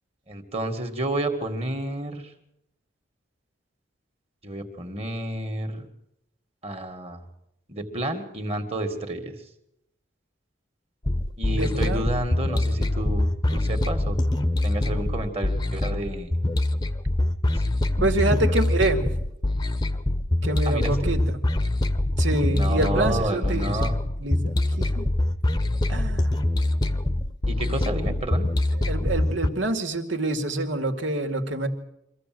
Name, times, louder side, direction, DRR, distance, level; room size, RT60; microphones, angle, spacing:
voice 1, 0.3-2.3 4.4-5.9 6.6-7.2 7.7-9.4 11.4-14.2 14.6-16.3 17.5-17.7 18.2-18.4 20.7-21.1 22.4-23.9 27.5-28.5, right 1 dB, 30° right, 6 dB, 2.2 m, -30 dB
sound 1, 11.0-29.5, left 1 dB, 20° left, 0.9 m, -24 dB
voice 2, 11.5-12.1 18.0-19.1 20.4-21.2 22.2-23.7 24.2-24.4 24.8-25.1 25.9-26.5 28.9-31.7, right 2 dB, 75° right, 4 dB, 2.4 m, -26 dB
24.5 x 15.0 x 7.8 m, 0.82 s
head